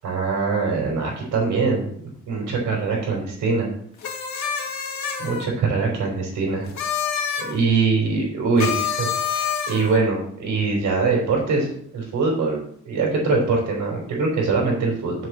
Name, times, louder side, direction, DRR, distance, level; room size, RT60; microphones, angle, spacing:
voice 1, 0.0-1.9 2.3-3.7 5.2-6.7 7.4-15.1, right 4 dB, 75° right, -3 dB, 4.5 m, -23 dB
sound 1, 4.0-5.5 6.7-7.5 8.6-10.0, left 7 dB, 65° left, 2.2 m, -27 dB
7.5 x 5.8 x 7.7 m, 0.66 s
cardioid pair, 90°, 30 cm